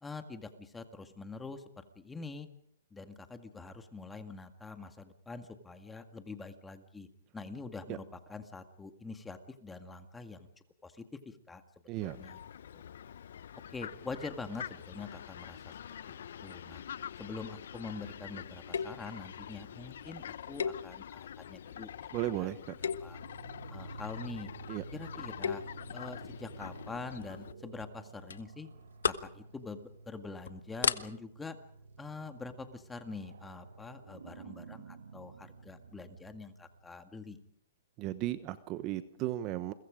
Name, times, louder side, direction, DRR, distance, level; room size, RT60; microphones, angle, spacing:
voice 1, 0.0-2.5 2.9-7.1 7.3-10.5 10.8-11.6 12.0-12.4 12.7-12.8 13.7-15.7 16.1-16.8 17.2-22.5 22.8-23.2 23.7-24.5 24.9-25.6 25.9-28.7 29.0-31.6 32.0-37.4, left 3 dB, 10° left, 8 dB, 1.9 m, -45 dB
voice 2, 11.9-12.2 22.1-22.6 24.7-24.8 38.0-39.7, right 14 dB, 30° right, 13 dB, 1.1 m, -35 dB
Fowl, 12.0-27.5, left 9 dB, 70° left, 0.8 m, -46 dB
sound 1, 18.7-19.1 20.6-21.3 21.8-22.1 22.7-23.3 25.2-25.8 27.2-27.5 27.8-27.9 28.3-28.4 28.8-29.3 29.8-30.0 30.4-30.5 30.8-31.0, left 6 dB, 85° left, 1.3 m, -34 dB
sound 2, 22.4-37.0, right 3 dB, 80° right, 2.6 m, -51 dB
29.5 x 23.0 x 5.2 m, 0.64 s
hypercardioid pair, 145°, 0 cm